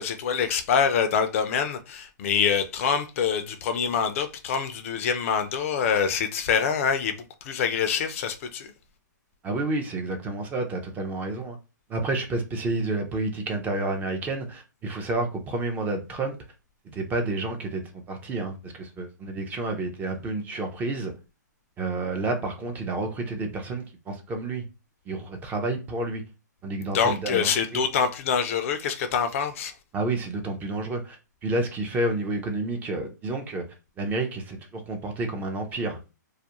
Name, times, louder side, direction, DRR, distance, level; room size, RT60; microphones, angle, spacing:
voice 1, 0.0-8.7 26.9-29.7, left 7 dB, 45° left, 0.4 m, -25 dB
voice 2, 9.4-11.6 11.9-16.4 16.8-21.1 21.8-24.6 25.1-26.2 26.6-27.8 29.9-33.6 34.0-36.0, right 2 dB, 15° right, 0.4 m, -30 dB
2.3 x 2.1 x 2.8 m
hypercardioid pair, 135°, 10 cm